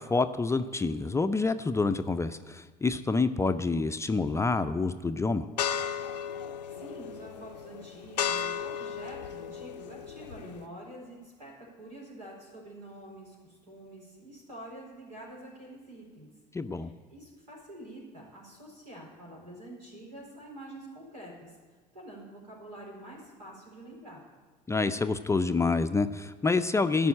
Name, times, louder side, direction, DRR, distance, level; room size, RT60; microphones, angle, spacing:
voice 1, 0.0-5.5 16.5-16.9 24.7-27.1, left 3 dB, 15° left, 9 dB, 0.5 m, -27 dB
sound 1, 5.6-10.7, left 8 dB, 85° left, 0.5 m, -35 dB
voice 2, 6.7-16.3 16.7-21.6 21.9-24.2, right 1 dB, 85° right, -4 dB, 4.3 m, -47 dB
13.5 x 5.4 x 8.8 m, 1.4 s
figure-of-eight pair, 65°, 21 cm